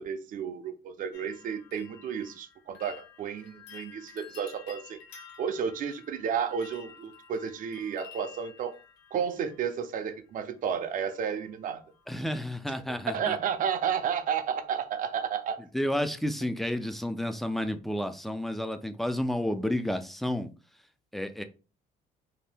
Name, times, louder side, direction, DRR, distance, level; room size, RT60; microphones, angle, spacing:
voice 1, 0.0-5.0 5.4-8.7 9.1-11.8 13.1-15.6, right 7 dB, 50° right, 0.5 m, -32 dB
sound 1, 1.1-10.1 11.0-11.5 11.8-12.3 12.6-12.7, left 6 dB, 75° left, 0.7 m, -52 dB
voice 2, 12.1-13.4 15.7-20.5 21.1-21.4, left 1 dB, ahead, 0.3 m, -31 dB
2.7 x 2.1 x 3.3 m
cardioid pair, 110°, 17 cm